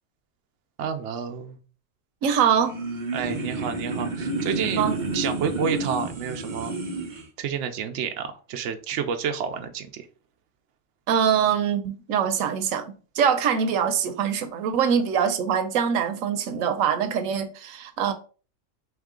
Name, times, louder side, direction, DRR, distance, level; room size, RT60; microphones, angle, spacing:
voice 1, 0.8-1.6 3.1-4.8 5.1-6.7 7.4-10.1, right 7 dB, 70° right, 0.9 m, -29 dB
voice 2, 2.2-2.8 4.7-5.0 11.1-18.1, right 7 dB, 90° right, 1.1 m, -23 dB
sound 1, 2.4-7.2, right 3 dB, 40° right, 0.9 m, -30 dB
4.5 x 3.2 x 3.7 m
omnidirectional pair, 1.4 m